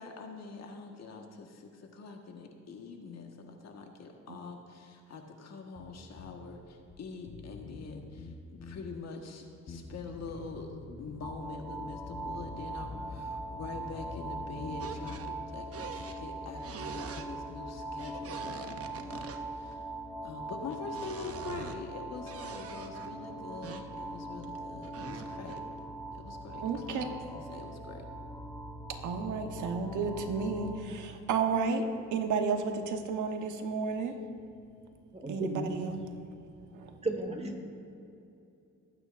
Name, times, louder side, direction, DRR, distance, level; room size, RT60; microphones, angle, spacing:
voice 1, 0.0-19.8 20.2-25.6 26.1-28.1, left 4 dB, 60° left, 3 dB, 1.6 m, -44 dB
Bass guitar, 5.8-6.4 6.9-7.0 7.3-8.9 9.7-11.3 12.1-13.2 13.5-15.3, left 4 dB, 45° left, 1.4 m, -47 dB
sound 1, 11.2-30.8, right 2 dB, ahead, 1.4 m, -41 dB
sound 2, 14.8-15.3 15.7-16.2 16.6-17.3 18.0-19.8 20.4-21.8 22.2-23.1 23.6-25.8, right 7 dB, 50° right, 0.9 m, -45 dB
voice 2, 26.6-27.1 28.9-34.2 35.3-36.0 36.7-37.0, right 5 dB, 80° right, 5 dB, 1.3 m, -32 dB
voice 3, 35.1-36.0 37.0-37.7, right 2 dB, 20° right, 3 dB, 1.6 m, -35 dB
21.5 x 9.0 x 2.6 m, 2.7 s
cardioid pair, 90°, 30 cm